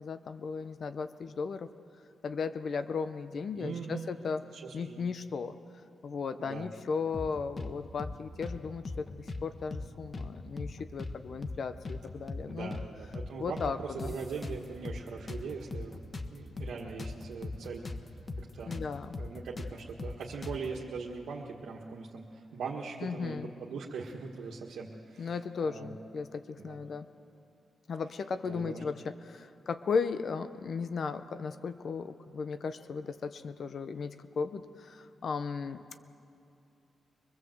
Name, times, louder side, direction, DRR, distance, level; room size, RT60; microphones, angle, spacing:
voice 1, 0.0-1.7 2.2-4.4 4.7-5.5 6.0-12.8 13.4-14.2 18.7-19.1 23.0-23.5 25.2-27.1 27.9-36.0, left 5 dB, 55° left, 11 dB, 0.8 m, -36 dB
voice 2, 3.5-4.1 4.5-5.0 6.4-6.7 7.3-7.5 12.5-16.0 16.3-17.9 18.4-18.8 19.2-25.9 26.6-26.8 28.4-28.8, right 5 dB, 85° right, -3 dB, 1.7 m, -41 dB
sound 1, 7.1-7.7 8.0-8.2 8.4-9.4 9.7-9.9 10.1-11.2 11.4-11.6 11.8-12.9 13.1-13.3 13.6-15.0 15.3-18.0 18.3-18.4 18.7-20.7, left 3 dB, 35° left, 1.3 m, -39 dB
23.5 x 21.0 x 7.8 m, 2.6 s
cardioid pair, 100°, 0 cm